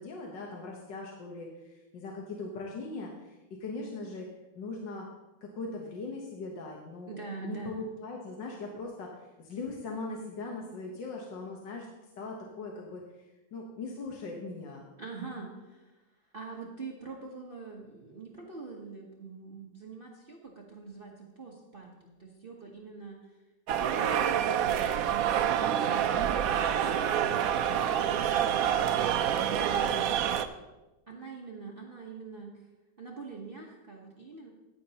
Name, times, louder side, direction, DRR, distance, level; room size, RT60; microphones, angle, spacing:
voice 1, 0.0-4.3 4.6-5.1 5.4-7.2 7.4-11.9 12.2-14.9 29.7-30.1, left 3 dB, 70° left, 0 dB, 1.8 m, -40 dB
voice 2, 7.1-7.8 15.0-23.4 23.7-26.2 26.8-29.8 31.1-32.7 33.0-34.5, right 4 dB, 35° right, -2 dB, 1.1 m, -44 dB
sound 1, 23.7-30.5, right 9 dB, 75° right, 0.8 m, -27 dB
14.5 x 10.0 x 2.9 m, 1.1 s
omnidirectional pair, 2.1 m